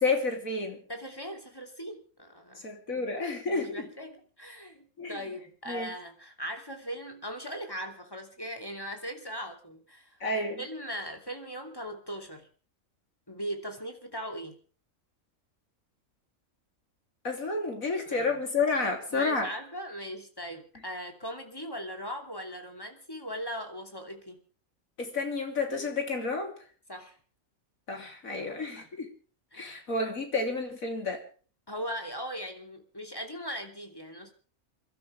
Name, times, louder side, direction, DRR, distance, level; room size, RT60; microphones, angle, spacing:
voice 1, 0.0-0.8 2.6-3.9 5.0-5.2 5.7-5.9 10.2-10.6 17.2-19.5 25.0-26.5 27.9-29.1 29.5-31.2, left 3 dB, 70° left, 4 dB, 3.6 m, -30 dB
voice 2, 0.9-10.2 10.6-12.5 13.3-14.6 18.1-18.3 19.1-24.4 26.9-27.2 28.3-28.9 29.5-29.7 31.7-34.3, equal, 15° left, 4 dB, 2.9 m, -39 dB
28.5 x 12.5 x 3.4 m, 0.41 s
omnidirectional pair, 1.5 m